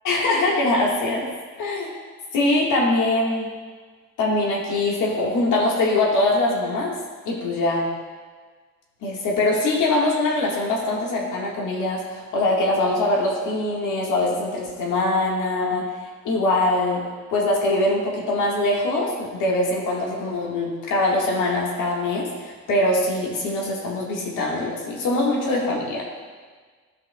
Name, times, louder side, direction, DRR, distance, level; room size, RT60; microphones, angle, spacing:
voice 1, 0.0-1.3 1.6-1.9 2.3-3.5 4.2-6.9 7.3-7.9 9.0-16.0 16.2-17.0 17.3-26.0, left 2 dB, 85° left, -3 dB, 1.7 m, -22 dB
13.5 x 5.3 x 2.3 m, 1.5 s
cardioid pair, 90°, 30 cm